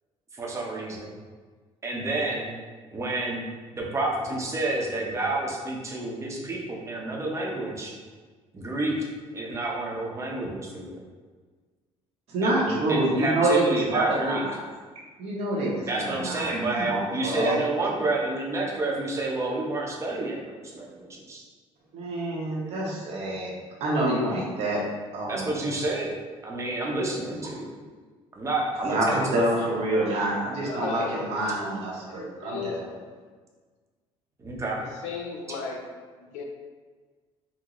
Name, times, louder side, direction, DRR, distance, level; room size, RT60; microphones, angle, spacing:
voice 1, 0.3-1.1 1.8-2.5 2.9-3.5 3.7-7.9 8.5-9.0 9.3-11.0 12.4-14.4 15.9-21.4 25.3-26.1 26.4-27.7 28.4-29.4 34.4-34.8, right 2 dB, 25° right, -2 dB, 0.7 m, -29 dB
voice 2, 12.3-14.6 15.2-17.5 21.9-23.5 23.8-24.8 25.1-25.5 28.8-32.9, right 1 dB, 65° right, -4 dB, 0.8 m, -27 dB
voice 3, 30.6-31.1 32.1-32.8 34.8-35.8 36.2-36.4, left 5 dB, 85° left, 2 dB, 0.5 m, -35 dB
3.8 x 2.0 x 3.0 m, 1.4 s
cardioid pair, 105°, 12 cm